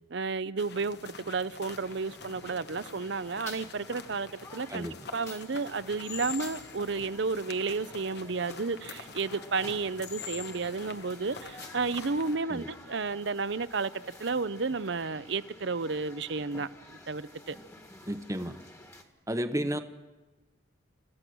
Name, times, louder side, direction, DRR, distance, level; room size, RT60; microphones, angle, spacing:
voice 1, 0.1-13.9 14.2-17.6 19.6-19.7, right 4 dB, 60° right, 0.7 m, -32 dB
sound 1, 0.6-12.4, left 6 dB, 55° left, 1.1 m, -46 dB
sound 2, 1.7-19.0, left 2 dB, 15° left, 1.7 m, -50 dB
voice 2, 18.1-18.6 19.3-19.8, equal, 15° right, 0.9 m, -32 dB
28.0 x 15.5 x 6.2 m
head